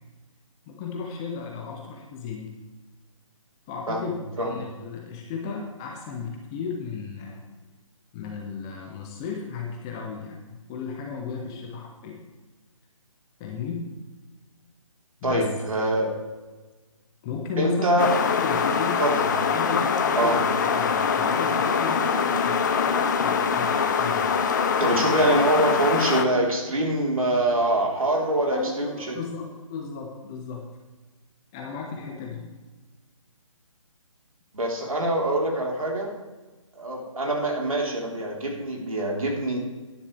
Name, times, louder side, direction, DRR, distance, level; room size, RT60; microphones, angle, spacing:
voice 1, 0.7-2.5 3.7-7.4 8.1-12.2 13.4-13.9 15.2-15.5 17.2-18.1 18.4-19.0 19.5-24.4 28.5-30.7 31.5-32.5, left 5 dB, 5° left, 1 dB, 0.4 m, -35 dB
voice 2, 3.9-4.6 15.2-16.1 17.6-18.2 19.0-19.2 20.2-20.4 24.8-29.2 34.5-36.1 36.8-39.6, right 1 dB, 85° right, -1 dB, 3.7 m, -24 dB
sound 1, 18.0-26.2, left 6 dB, 35° left, 0.8 m, -23 dB
13.0 x 10.5 x 3.3 m, 1.2 s
hypercardioid pair, 160°, 17 cm